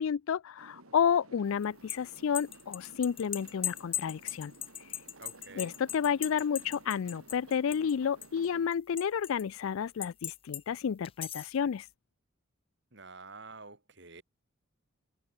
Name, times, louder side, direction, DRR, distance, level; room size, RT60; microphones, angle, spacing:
voice 1, 0.0-4.5 5.6-11.9, left 7 dB, 70° left, 0.4 m, -31 dB
sound 1, 0.6-8.7, right 2 dB, 85° right, 3.0 m, -55 dB
sound 2, 1.6-7.9 8.2-9.4 10.0-10.6 11.0-11.6, left 10 dB, 25° left, 0.7 m, -38 dB
voice 2, 5.2-5.7 12.9-14.2, right 3 dB, 55° right, 3.6 m, -48 dB
head